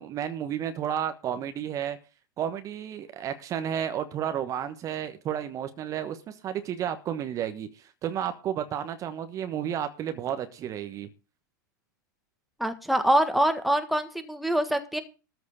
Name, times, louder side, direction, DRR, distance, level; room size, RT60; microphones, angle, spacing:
voice 1, 0.0-2.0 2.4-11.1, right 9 dB, 30° right, 9 dB, 1.2 m, -32 dB
voice 2, 12.6-15.0, right 1 dB, ahead, 8 dB, 1.5 m, -24 dB
13.5 x 4.9 x 8.2 m, 0.33 s
figure-of-eight pair, 100°, 11 cm